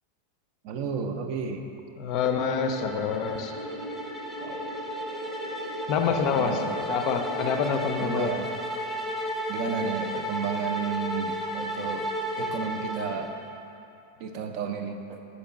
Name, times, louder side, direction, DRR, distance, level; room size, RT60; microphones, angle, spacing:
voice 1, 0.6-1.7 4.4-4.7 6.3-6.8 8.0-8.5 9.5-12.1 12.4-13.3 14.2-15.2, right 6 dB, 45° right, 6 dB, 0.4 m, -32 dB
voice 2, 2.0-3.5 5.9-8.4, left 6 dB, 40° left, 5 dB, 0.4 m, -27 dB
sound 1, 2.2-13.6, equal, ahead, 0.7 m, -34 dB
sound 2, 2.2-7.6, right 1 dB, 75° right, 0.7 m, -40 dB
5.1 x 4.2 x 5.8 m, 2.9 s
figure-of-eight pair, 90°, 0 cm